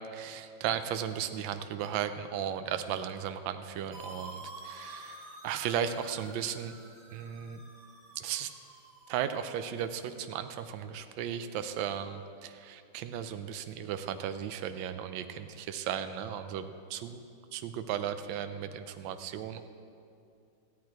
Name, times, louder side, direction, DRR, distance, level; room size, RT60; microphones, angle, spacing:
voice 1, 0.1-6.7 7.1-7.6 8.2-8.5 9.1-17.2 17.5-19.6, right 9 dB, 80° right, 9 dB, 1.3 m, -35 dB
sound 1, 3.9-9.7, right 2 dB, 50° right, 2.9 m, -49 dB
15.0 x 8.5 x 4.5 m, 2.5 s
omnidirectional pair, 2.1 m